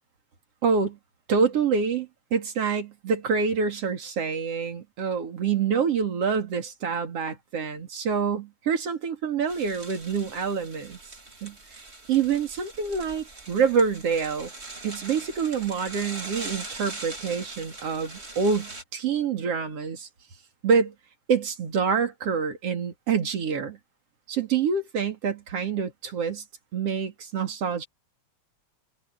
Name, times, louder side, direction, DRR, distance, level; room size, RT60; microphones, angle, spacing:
voice 1, 0.6-1.0 1.3-11.0 11.4-11.6 12.1-14.5 14.8-20.1 20.6-20.9 21.3-23.8 24.3-26.4 26.7-27.9, right 6 dB, 50° right, 3.6 m, -26 dB
sound 1, 9.5-18.8, right 2 dB, 20° right, 2.8 m, -41 dB
omnidirectional pair, 3.5 m